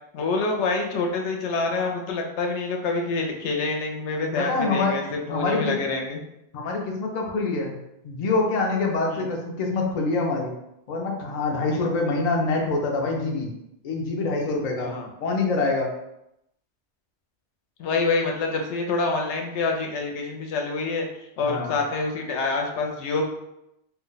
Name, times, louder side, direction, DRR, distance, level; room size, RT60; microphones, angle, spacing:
voice 1, 0.1-6.2 9.1-9.3 11.7-12.1 14.8-15.1 17.8-21.1 21.4-23.2, left 3 dB, 80° left, 2 dB, 0.9 m, -27 dB
voice 2, 4.4-5.0 5.3-5.8 6.5-7.8 8.0-10.5 10.9-13.5 13.8-14.9 15.2-15.9 21.4-21.8, left 3 dB, 50° left, 0 dB, 0.5 m, -25 dB
2.4 x 2.1 x 3.8 m, 0.84 s
omnidirectional pair, 1.2 m